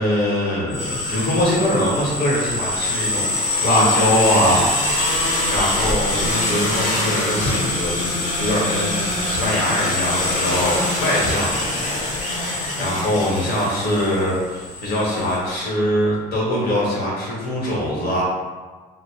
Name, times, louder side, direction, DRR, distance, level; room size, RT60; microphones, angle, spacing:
voice 1, 0.0-3.3 3.6-4.7 5.1-18.2, left 1 dB, 70° left, -4 dB, 1.1 m, -22 dB
sound 1, 0.7-15.4, left 2 dB, 45° left, 0.8 m, -24 dB
2.8 x 2.1 x 3.2 m, 1.4 s
cardioid pair, 110°, 17 cm